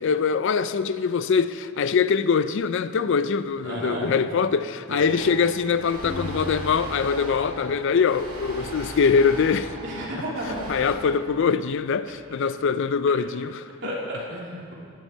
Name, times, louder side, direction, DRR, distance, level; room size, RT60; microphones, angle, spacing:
voice 1, 0.0-9.7 10.7-13.7, left 5 dB, 60° left, 0.4 m, -23 dB
voice 2, 3.6-4.1 4.9-5.1 9.8-10.6 13.8-14.7, right 1 dB, 55° right, 3.1 m, -32 dB
sound 1, 5.1-11.0, right 2 dB, 85° right, 2.9 m, -39 dB
sound 2, 6.0-8.2, right 1 dB, 35° left, 1.6 m, -37 dB
16.0 x 9.9 x 4.5 m
head